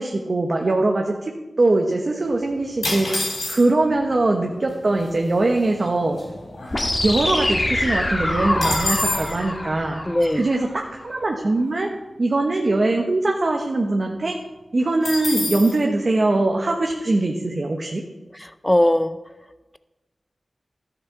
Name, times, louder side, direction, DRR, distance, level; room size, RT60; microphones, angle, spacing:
voice 1, 0.0-6.2 7.0-10.0 10.3-11.9 12.2-14.4 14.7-18.0, right 2 dB, 60° right, 1 dB, 1.1 m, -22 dB
sound 1, 2.8-3.9 4.7-4.8 5.0-5.3 5.8-7.2 7.6-7.7 8.0-9.4 15.0-15.8, left 2 dB, 85° left, 3.6 m, -27 dB
sound 2, 6.7-10.7, left 1 dB, 45° left, 2.1 m, -25 dB
voice 2, 10.1-10.5 18.6-19.1, left 1 dB, 15° left, 12 dB, 0.5 m, -18 dB
12.5 x 7.0 x 5.9 m, 1.1 s
cardioid pair, 40°, 0 cm